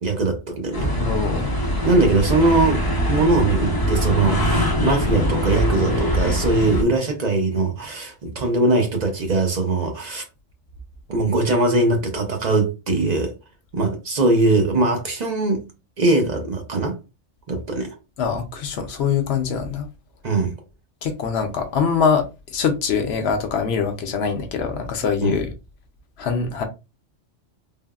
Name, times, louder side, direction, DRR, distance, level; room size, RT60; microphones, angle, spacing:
voice 1, 0.0-0.9 1.8-2.8 3.1-10.2 11.1-13.3 13.7-15.7 16.0-17.0 17.5-17.9 20.2-20.5 25.2-25.4, right 2 dB, 50° right, 0.5 m, -21 dB
sound 1, 0.7-6.8, equal, 35° left, 0.3 m, -22 dB
voice 2, 1.0-1.5 18.2-19.8 21.0-22.2 22.5-25.5 26.2-26.6, left 6 dB, 65° left, 0.8 m, -23 dB
3.4 x 2.0 x 2.2 m
omnidirectional pair, 1.3 m